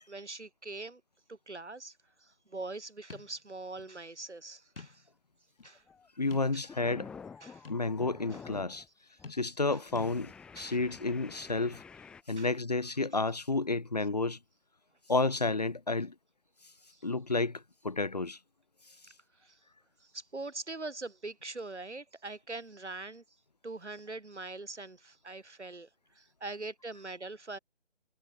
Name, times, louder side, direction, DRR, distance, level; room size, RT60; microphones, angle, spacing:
voice 1, 0.1-1.0 1.3-5.0 5.6-5.8 6.5-6.7 7.4-7.7 8.3-8.4 9.7-9.8 10.6-10.8 12.4-12.5 16.9-17.0 19.4-19.6 20.0-23.2 23.6-25.9 26.1-27.6, right 3 dB, 80° right, 7.8 m, -43 dB
sound 1, 3.1-3.4 3.8-3.9 4.8-5.1 5.6-5.7 6.3-6.9 7.6-7.9 9.2-9.7 9.9-10.1, left 5 dB, 55° left, 1.6 m, -48 dB
sound 2, 5.7-6.1 6.4-8.9 9.2-9.4 9.9-12.2, left 5 dB, 5° left, 2.1 m, -49 dB
voice 2, 6.2-7.1 7.7-8.8 9.3-11.8 12.3-14.4 15.1-16.1 17.0-18.4, left 3 dB, 40° left, 0.5 m, -31 dB
figure-of-eight pair, 165°, 34 cm